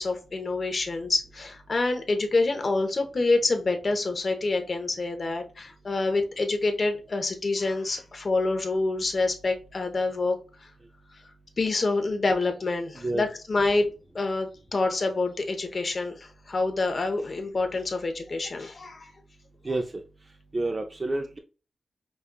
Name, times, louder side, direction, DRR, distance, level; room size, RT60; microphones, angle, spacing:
voice 1, 0.0-10.4 10.6-10.7 11.6-13.9 14.1-19.1, left 3 dB, 50° left, 5 dB, 0.8 m, -27 dB
voice 2, 12.9-13.3 19.6-21.4, right 2 dB, 35° right, 3 dB, 0.5 m, -30 dB
5.2 x 2.4 x 2.2 m, 0.34 s
cardioid pair, 70°, 0 cm